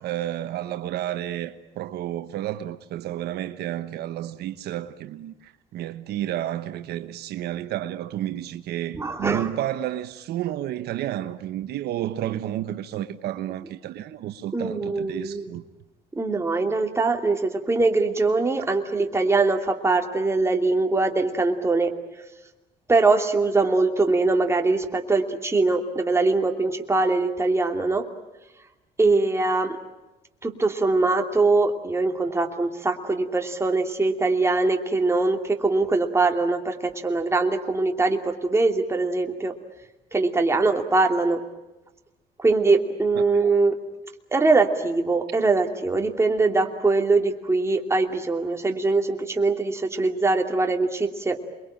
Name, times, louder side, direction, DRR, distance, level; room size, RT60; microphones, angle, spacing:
voice 1, 0.0-15.6, right 12 dB, 75° right, 1.2 m, -31 dB
voice 2, 8.9-9.5 14.5-15.5 16.2-21.9 22.9-28.0 29.0-29.8 30.4-39.5 40.1-41.4 42.4-43.8 44.3-51.4, right 3 dB, 15° right, 2.8 m, -22 dB
28.0 x 22.5 x 9.0 m
cardioid pair, 110°, 17 cm